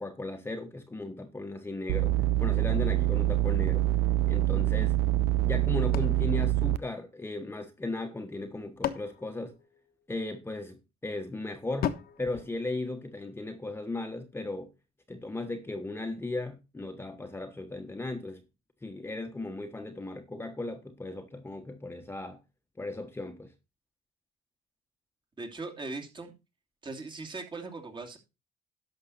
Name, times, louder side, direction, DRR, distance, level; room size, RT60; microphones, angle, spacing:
voice 1, 0.0-2.1 2.4-3.9 4.3-5.0 5.4-9.5 10.1-11.9 12.2-14.7 15.1-18.4 18.8-22.4 22.8-23.5, left 2 dB, 15° left, 1.3 m, -36 dB
sound 1, 1.9-6.8, right 15 dB, 85° right, 0.6 m, -25 dB
sound 2, 5.9-7.5 8.3-10.3 11.8-13.4, left 10 dB, 65° left, 1.3 m, -38 dB
voice 2, 25.4-26.3 26.8-28.2, right 3 dB, 30° right, 2.7 m, -39 dB
11.5 x 6.7 x 4.2 m
cardioid pair, 110°, 17 cm